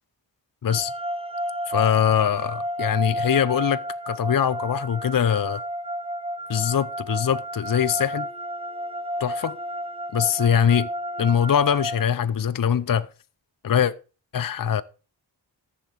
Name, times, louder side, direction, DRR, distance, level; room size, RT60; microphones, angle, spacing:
voice 1, 0.6-0.9 1.7-3.8 4.1-5.6 6.5-8.3 9.2-9.5 10.1-10.9 11.2-13.1 13.6-13.9 14.3-14.8, left 8 dB, 45° left, 0.7 m, -22 dB
sound 1, 0.7-12.0, equal, 10° right, 1.0 m, -32 dB
14.0 x 6.9 x 4.7 m
wide cardioid pair, 95°, 45 cm